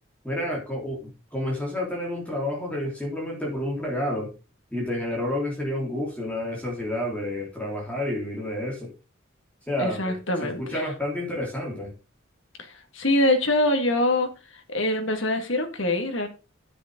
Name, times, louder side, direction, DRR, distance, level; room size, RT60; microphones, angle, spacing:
voice 1, 0.2-4.3 4.7-8.9 9.7-10.1 10.4-11.9, left 1 dB, 5° left, 3.5 m, -29 dB
voice 2, 9.8-10.8 12.6-12.7 12.9-14.3 14.7-16.3, left 1 dB, 70° left, 2.0 m, -24 dB
9.9 x 7.8 x 3.8 m
head